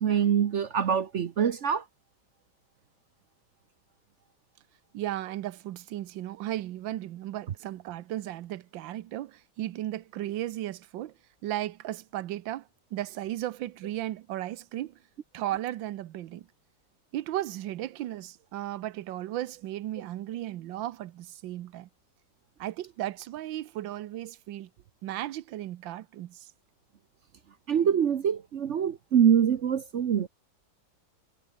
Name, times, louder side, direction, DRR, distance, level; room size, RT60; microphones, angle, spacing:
voice 1, 0.0-1.8 27.7-30.3, right 8 dB, 55° right, 0.8 m, -24 dB
voice 2, 4.9-11.1 11.4-15.0 15.3-16.5 17.1-21.9 22.6-24.7 25.0-26.5, right 13 dB, 85° right, 1.5 m, -35 dB
omnidirectional pair, 2.0 m